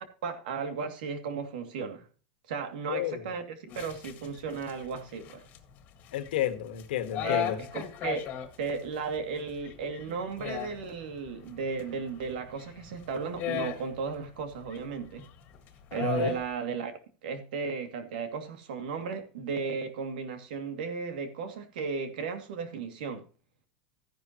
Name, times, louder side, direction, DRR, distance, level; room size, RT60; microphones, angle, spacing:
voice 1, 0.2-2.1 2.5-5.4 7.2-7.5 7.7-15.2 15.9-16.9 17.2-23.3, right 5 dB, 90° right, 2.5 m, -35 dB
voice 2, 2.9-3.2 6.1-7.6 16.0-16.3, left 11 dB, 85° left, 1.6 m, -31 dB
sound 1, 3.7-16.5, left 10 dB, 35° left, 1.7 m, -39 dB
13.0 x 10.5 x 3.0 m
supercardioid pair, 160°, 5 cm